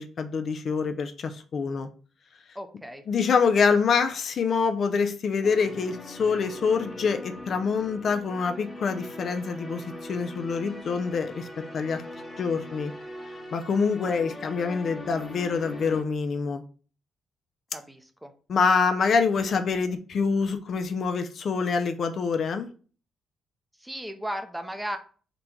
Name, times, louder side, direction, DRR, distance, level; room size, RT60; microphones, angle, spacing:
voice 1, 0.0-1.9 3.1-11.5 11.7-12.0 12.4-12.9 13.5-16.6 18.5-22.7, left 5 dB, 55° left, 0.4 m, -26 dB
voice 2, 2.5-3.0 14.0-14.1 17.7-18.3 23.8-25.0, equal, 5° right, 0.6 m, -36 dB
sound 1, 5.4-16.0, left 1 dB, 25° left, 1.1 m, -41 dB
3.9 x 2.3 x 4.4 m
cardioid pair, 90°, 0 cm